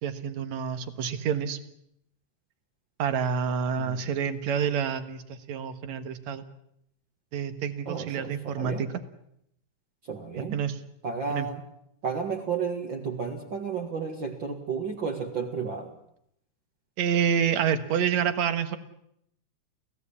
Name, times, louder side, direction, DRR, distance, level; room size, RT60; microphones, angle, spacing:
voice 1, 0.0-1.6 3.0-6.4 7.3-8.9 10.4-10.8 11.3-11.5 17.0-18.8, right 7 dB, 65° right, 11 dB, 2.5 m, -28 dB
voice 2, 7.9-8.9 10.0-10.6 11.0-11.6 12.0-15.9, right 5 dB, 40° right, 1 dB, 2.2 m, -32 dB
28.5 x 16.5 x 8.5 m, 0.75 s
omnidirectional pair, 3.7 m